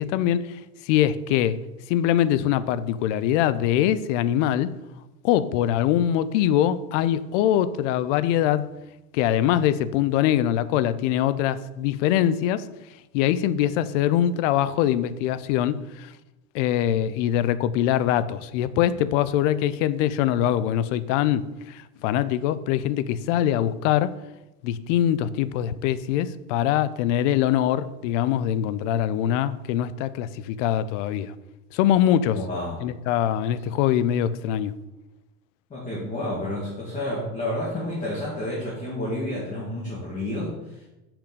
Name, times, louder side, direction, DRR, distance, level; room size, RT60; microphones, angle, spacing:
voice 1, 0.0-1.6 1.9-4.7 5.2-8.7 9.1-12.7 13.1-16.1 16.5-24.2 24.6-31.3 31.7-32.4 32.8-34.7, left 11 dB, 55° left, 15 dB, 0.6 m, -23 dB
voice 2, 32.3-32.8 35.7-40.6, left 1 dB, 15° left, -5 dB, 1.8 m, -30 dB
6.0 x 5.1 x 6.7 m, 0.99 s
supercardioid pair, 150°, 44 cm